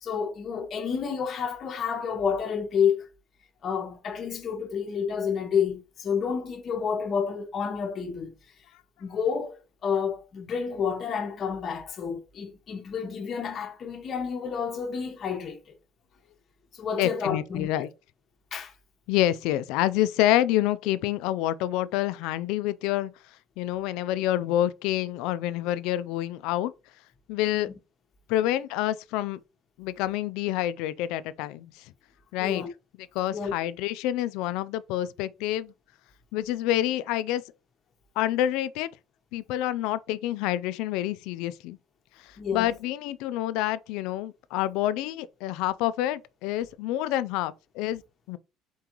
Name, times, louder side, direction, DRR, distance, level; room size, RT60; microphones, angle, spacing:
voice 1, 0.0-3.1 3.6-8.3 9.0-9.6 9.8-15.7 16.7-17.9 18.5-18.7 32.4-32.7 33.3-33.5 42.4-42.7, left 6 dB, 35° left, 0.8 m, -29 dB
voice 2, 17.0-17.9 19.1-23.1 23.6-26.7 27.3-27.7 28.3-29.4 29.8-31.9 32.3-32.6 33.1-35.7 36.3-37.4 38.2-38.9 39.3-41.8 42.2-48.0 48.3-48.4, left 13 dB, 75° left, 0.3 m, -27 dB
4.4 x 3.8 x 3.0 m
cardioid pair, 165°, 0 cm